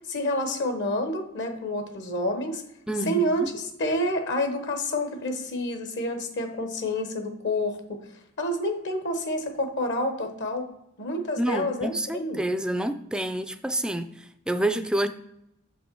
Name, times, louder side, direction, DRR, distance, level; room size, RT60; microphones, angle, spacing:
voice 1, 0.1-2.6 3.1-8.0 8.4-10.7 11.0-12.4, left 1 dB, 55° left, 1.0 m, -28 dB
voice 2, 2.9-3.5 11.4-15.1, right 1 dB, 5° right, 0.3 m, -28 dB
6.8 x 5.3 x 4.5 m
head